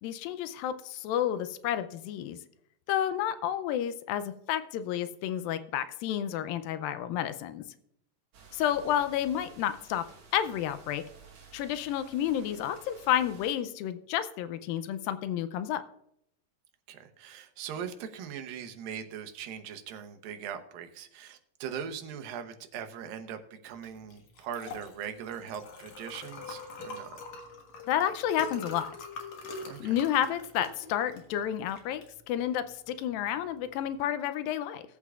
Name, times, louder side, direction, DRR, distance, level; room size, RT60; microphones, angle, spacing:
voice 1, 0.0-2.4 2.9-7.6 8.5-10.0 10.3-11.0 11.5-15.8 27.9-28.9 29.8-34.8, left 10 dB, 90° left, 12 dB, 2.4 m, -30 dB
sound 1, 8.3-13.6, right 5 dB, 50° right, 2.7 m, -54 dB
voice 2, 16.9-27.2 29.7-30.0, right 8 dB, 90° right, 7 dB, 2.7 m, -40 dB
Liquid, 23.8-33.9, left 2 dB, 60° left, 2.6 m, -44 dB
18.0 x 8.2 x 2.4 m, 0.74 s
omnidirectional pair, 4.0 m